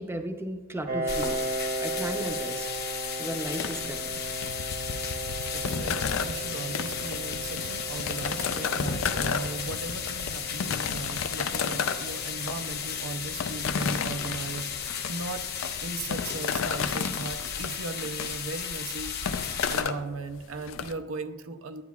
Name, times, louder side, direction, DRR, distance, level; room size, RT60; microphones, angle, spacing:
voice 1, 0.0-1.5 1.8-2.7 3.2-4.1, right 1 dB, 10° right, 6 dB, 0.5 m, -35 dB
Piano, 0.9-16.2, right 3 dB, 45° right, 0.8 m, -38 dB
sound 1, 1.1-19.8, left 7 dB, 55° left, 0.8 m, -35 dB
sound 2, 3.6-20.9, left 6 dB, 75° left, 0.4 m, -33 dB
voice 2, 5.5-15.5 15.8-21.8, right 3 dB, 85° right, 10 dB, 0.5 m, -38 dB
9.4 x 9.3 x 2.3 m, 1.2 s
head